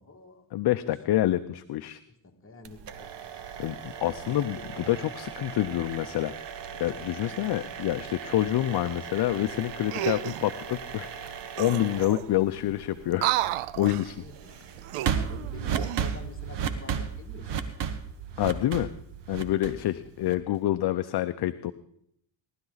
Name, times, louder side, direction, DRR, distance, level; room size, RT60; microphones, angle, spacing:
voice 1, 0.0-0.4 0.8-0.9 2.1-3.4 4.2-5.0 6.6-6.9 12.1-12.8 14.2-18.1 19.8-20.1, left 3 dB, 25° left, 1 dB, 2.1 m, -49 dB
voice 2, 0.5-2.0 3.6-6.3 6.8-13.3 13.8-14.2 18.4-18.9 19.3-21.7, left 14 dB, 50° left, 11 dB, 0.6 m, -27 dB
sound 1, 2.6-20.6, right 7 dB, 55° right, 1.3 m, -36 dB
sound 2, 9.9-10.5 11.3-11.4 11.6-12.4 13.1-14.1 14.8-16.2 16.7-16.9, right 14 dB, 80° right, 0.7 m, -32 dB
18.5 x 12.0 x 4.0 m, 0.72 s
cardioid pair, 105°, 50 cm